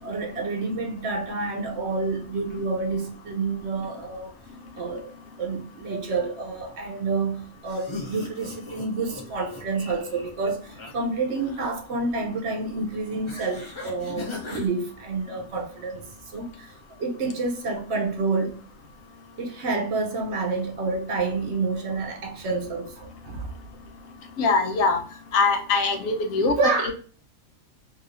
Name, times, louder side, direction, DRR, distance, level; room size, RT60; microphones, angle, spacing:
voice 1, 0.0-4.3 4.7-5.1 5.4-16.1 16.3-16.7 17.0-18.6 19.4-23.5 26.6-26.9, right 3 dB, 60° right, 0.9 m, -28 dB
sound 1, 7.6-10.9 11.2-11.8 13.3-14.7, left 3 dB, 30° left, 0.6 m, -39 dB
voice 2, 24.4-25.0 25.3-26.9, left 4 dB, 80° left, 1.1 m, -22 dB
3.0 x 2.7 x 2.5 m
omnidirectional pair, 1.4 m